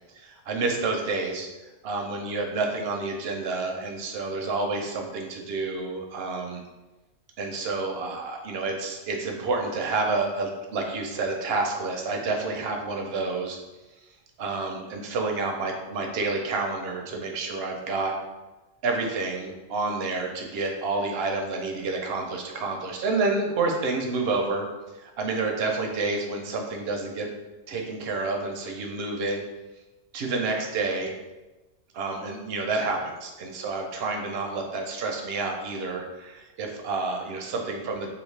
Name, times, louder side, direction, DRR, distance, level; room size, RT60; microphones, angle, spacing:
voice 1, 0.1-1.5 1.8-6.6 7.4-13.6 14.4-18.1 18.8-24.7 25.0-27.3 27.7-29.4 30.1-31.1 31.9-38.1, right 3 dB, 65° right, 2 dB, 0.7 m, -29 dB
3.2 x 2.4 x 3.1 m, 1.1 s
omnidirectional pair, 1.3 m